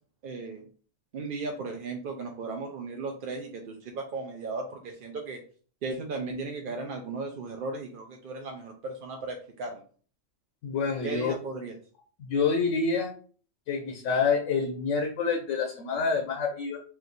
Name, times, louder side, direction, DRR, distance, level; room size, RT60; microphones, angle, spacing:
voice 1, 0.2-0.6 1.1-5.4 5.8-9.8 11.0-11.7, right 3 dB, 55° right, 3 dB, 0.6 m, -36 dB
voice 2, 10.6-11.3 12.2-13.1 13.7-16.8, left 5 dB, 80° left, 3 dB, 1.0 m, -27 dB
3.2 x 3.1 x 3.9 m, 0.42 s
omnidirectional pair, 1.3 m